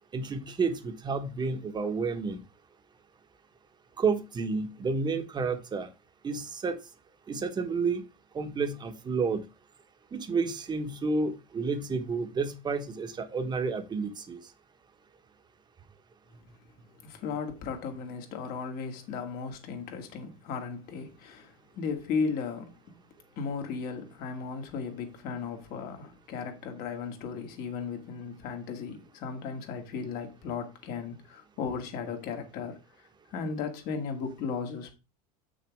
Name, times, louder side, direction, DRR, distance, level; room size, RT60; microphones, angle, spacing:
voice 1, 0.1-2.4 4.0-5.9 6.2-6.8 7.3-8.0 8.3-9.4 10.1-14.4, right 4 dB, 25° right, 1.3 m, -30 dB
voice 2, 17.0-22.8 23.4-34.9, left 5 dB, 55° left, 2.1 m, -36 dB
7.7 x 6.3 x 3.6 m
supercardioid pair, 100°, 18 cm